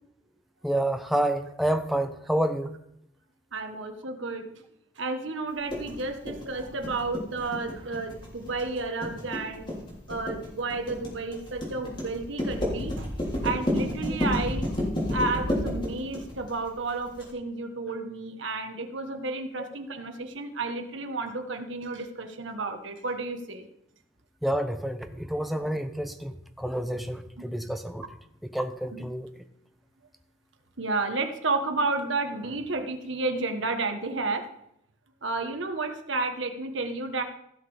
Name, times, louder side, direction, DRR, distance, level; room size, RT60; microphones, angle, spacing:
voice 1, 0.6-2.8 14.1-14.2 24.4-28.1 28.4-29.3, right 1 dB, ahead, 7 dB, 0.7 m, -29 dB
voice 2, 3.5-4.5 5.0-9.7 10.1-13.1 13.4-14.7 15.1-23.7 28.9-29.0 30.8-34.5 35.2-37.2, right 3 dB, 75° right, 6 dB, 1.4 m, -31 dB
sound 1, 5.7-17.3, left 1 dB, 25° left, 3.5 m, -30 dB
16.0 x 6.3 x 5.0 m, 0.77 s
head